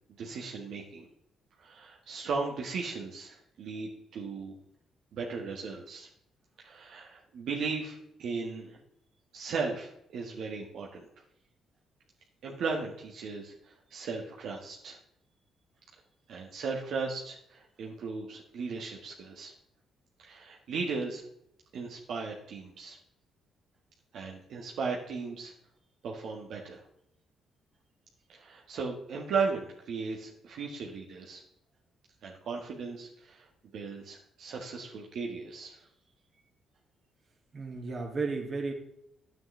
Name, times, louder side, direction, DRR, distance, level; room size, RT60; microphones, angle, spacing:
voice 1, 0.2-1.0 1.6-4.5 5.1-6.1 6.6-8.8 9.3-11.1 12.4-15.0 16.3-19.5 20.2-21.2 21.7-23.0 24.1-25.5 26.0-26.8 28.3-31.4 32.2-35.8, right 4 dB, 70° right, -1 dB, 1.6 m, -36 dB
voice 2, 37.5-38.7, right 4 dB, 40° right, 1 dB, 2.3 m, -33 dB
10.0 x 8.8 x 3.4 m, 0.75 s
cardioid pair, 90°, 0 cm